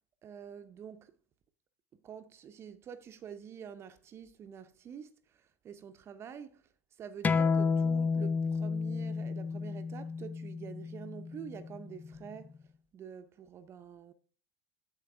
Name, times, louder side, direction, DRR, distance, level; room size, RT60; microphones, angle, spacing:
voice 1, 0.2-1.1 2.0-6.7 7.0-12.6 12.9-14.1, right 7 dB, 35° right, 0.8 m, -47 dB
sound 1, 7.2-12.4, left 5 dB, 20° left, 0.5 m, -31 dB
9.5 x 7.4 x 3.4 m
hypercardioid pair, 85°, 8 cm